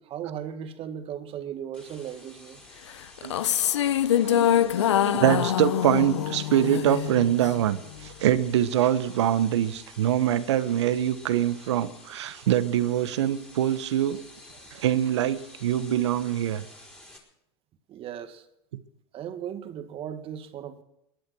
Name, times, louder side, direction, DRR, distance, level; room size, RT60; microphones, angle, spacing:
voice 1, 0.0-2.6 4.8-5.0 17.9-18.5 19.1-20.8, right 9 dB, 40° right, 1.7 m, -37 dB
sound 1, 1.7-17.2, left 1 dB, 10° left, 4.1 m, -50 dB
sound 2, 3.2-7.6, left 11 dB, 85° left, 0.6 m, -24 dB
voice 2, 3.2-3.6 4.2-14.2 14.7-16.7, right 11 dB, 80° right, 1.1 m, -24 dB
20.0 x 10.5 x 6.2 m
hypercardioid pair, 105°, 14 cm